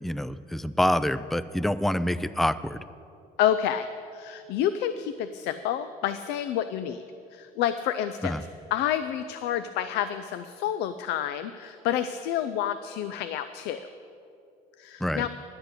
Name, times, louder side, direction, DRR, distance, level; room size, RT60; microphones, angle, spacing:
voice 1, 0.0-2.8 8.2-8.4 15.0-15.3, left 1 dB, ahead, 14 dB, 0.3 m, -26 dB
voice 2, 3.4-3.9 4.1-7.0 7.3-8.4 8.7-13.8 14.8-15.3, left 10 dB, 85° left, 11 dB, 0.4 m, -29 dB
11.0 x 8.1 x 6.6 m, 2.6 s
cardioid pair, 110°, 17 cm